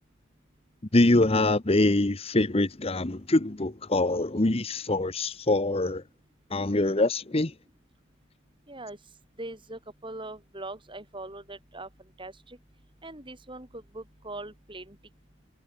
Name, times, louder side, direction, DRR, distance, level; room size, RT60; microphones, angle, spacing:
voice 1, 0.9-6.0 6.5-7.5, left 2 dB, 30° left, 1.0 m, -24 dB
voice 2, 8.7-9.0 9.4-11.9 12.2-12.6 13.0-15.0, right 2 dB, 25° right, 5.9 m, -41 dB
head